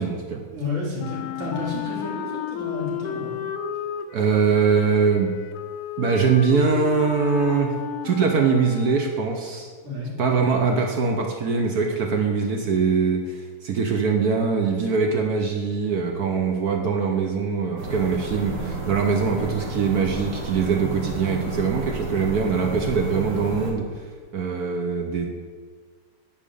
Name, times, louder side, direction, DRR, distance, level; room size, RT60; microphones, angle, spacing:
voice 1, 0.0-0.4 4.1-5.3 6.0-7.7 8.0-9.7 10.2-23.8 24.3-25.3, right 5 dB, 60° right, 3 dB, 1.0 m, -22 dB
voice 2, 0.5-3.4 9.8-10.1, left 2 dB, 85° right, -5 dB, 3.5 m, -31 dB
Wind instrument woodwind instrument, 1.0-9.3, left 9 dB, 85° left, 0.8 m, -33 dB
sound 1, 17.8-23.7, right 2 dB, 40° right, 1.5 m, -32 dB
10.0 x 4.4 x 6.8 m, 1.5 s
omnidirectional pair, 2.4 m